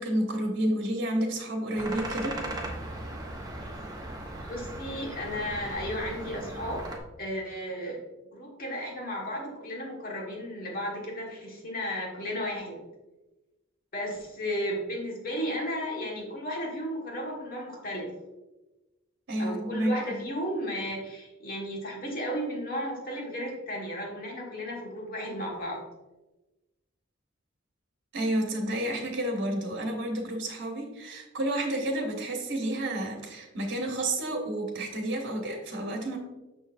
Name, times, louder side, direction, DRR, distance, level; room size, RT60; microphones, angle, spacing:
voice 1, 0.0-2.4 19.3-20.2 28.1-36.2, right 1 dB, 60° right, 1 dB, 1.2 m, -30 dB
sound 1, 1.7-7.0, right 1 dB, 20° right, 0.9 m, -38 dB
voice 2, 4.5-6.8 7.2-8.0 8.3-12.8 13.9-18.1 19.4-25.8, equal, 45° left, -1 dB, 1.6 m, -34 dB
6.5 x 6.5 x 2.6 m, 1.1 s
head